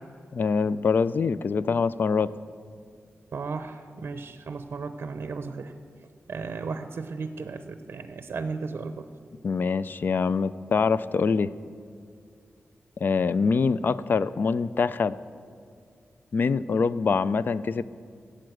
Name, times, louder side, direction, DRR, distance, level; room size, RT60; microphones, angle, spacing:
voice 1, 0.3-2.3 9.4-11.5 13.0-15.2 16.3-17.8, left 5 dB, 50° left, 16 dB, 0.4 m, -24 dB
voice 2, 3.3-5.7 6.3-9.1, right 4 dB, 60° right, 9 dB, 0.6 m, -35 dB
15.5 x 8.7 x 7.8 m, 2.2 s
wide cardioid pair, 175°, 4 cm